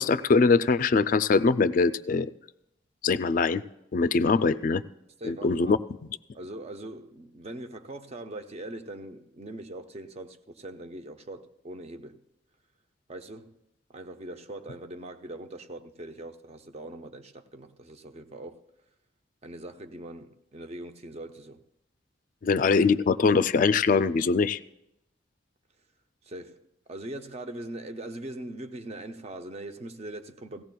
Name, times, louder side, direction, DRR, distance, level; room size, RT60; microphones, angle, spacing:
voice 1, 0.0-2.3 3.0-3.6 3.9-4.8 5.3-5.8 22.4-24.6, left 4 dB, 45° left, 0.3 m, -22 dB
voice 2, 5.2-5.8 6.3-12.2 13.1-13.6 13.9-18.6 19.4-21.6 26.2-30.6, right 1 dB, 35° right, 0.6 m, -41 dB
17.5 x 16.0 x 2.3 m
head